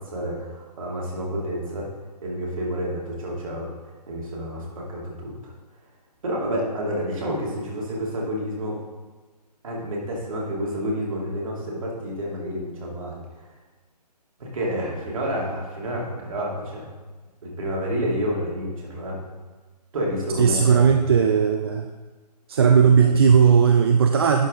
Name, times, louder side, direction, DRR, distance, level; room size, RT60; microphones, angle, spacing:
voice 1, 0.0-1.9 2.2-3.7 4.1-5.5 6.2-8.8 9.6-13.5 14.4-16.9 17.4-19.2 19.9-20.9 22.8-23.1, equal, 50° right, -3 dB, 2.5 m, -29 dB
voice 2, 20.4-21.9 22.5-24.5, right 6 dB, 35° right, 5 dB, 0.4 m, -17 dB
11.0 x 4.6 x 3.8 m, 1.3 s
figure-of-eight pair, 145°, 21 cm